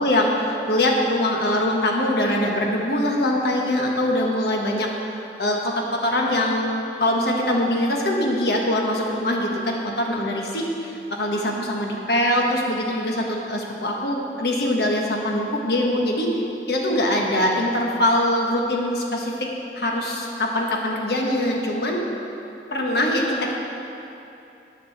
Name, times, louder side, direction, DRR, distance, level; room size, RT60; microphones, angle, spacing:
voice 1, 0.0-4.9 5.4-16.4 16.7-19.3 19.7-22.0 22.7-23.5, left 1 dB, 65° left, -1 dB, 1.4 m, -23 dB
8.7 x 6.9 x 7.3 m, 2.8 s
head